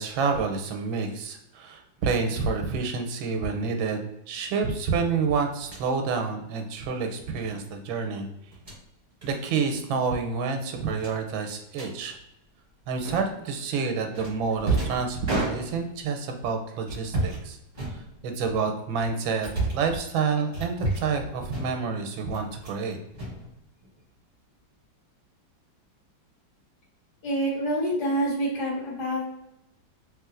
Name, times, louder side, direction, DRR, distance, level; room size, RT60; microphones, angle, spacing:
voice 1, 0.0-8.3 9.2-12.2 12.9-17.6 17.9-19.5 19.7-23.0, right 5 dB, 90° right, 5 dB, 1.4 m, -28 dB
sound 1, 5.6-5.9 7.4-7.6 8.4-8.8 9.2-9.4 9.7-9.9 10.2-10.3 11.0-11.9 13.0-13.5 14.1-16.0 16.8-17.4 17.7-18.5 19.0-19.9 20.5-21.2 21.5-22.0 22.3-22.8 23.1-24.0, right 2 dB, 30° right, 1.0 m, -32 dB
voice 2, 27.2-29.4, right 1 dB, 65° left, -8 dB, 1.8 m, -27 dB
3.1 x 3.0 x 2.4 m, 0.86 s
omnidirectional pair, 2.1 m